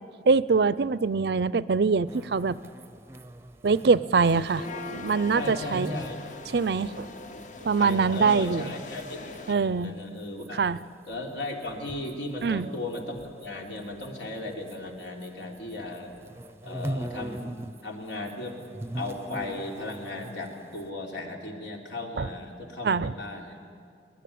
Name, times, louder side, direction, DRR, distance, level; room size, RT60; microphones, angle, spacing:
voice 1, 0.3-2.6 3.6-4.6 4.9-5.9 6.5-7.1 7.6-8.7 9.5-9.9 10.5-10.8 12.4-12.7 22.2-22.3 22.8-23.1, right 4 dB, 70° right, 17 dB, 0.5 m, -23 dB
sound 1, 2.1-9.1 9.3-15.3 15.5-17.8 18.1-20.9, right 1 dB, 15° right, 0.6 m, -41 dB
sound 2, 4.2-9.5, left 3 dB, 45° left, 0.9 m, -41 dB
voice 2, 5.3-6.2 7.8-9.2 9.6-10.6 11.1-16.1 16.6-17.5 17.8-18.6 18.9-23.6, left 2 dB, 85° left, 0 dB, 3.3 m, -36 dB
22.5 x 19.5 x 8.6 m, 2.3 s
head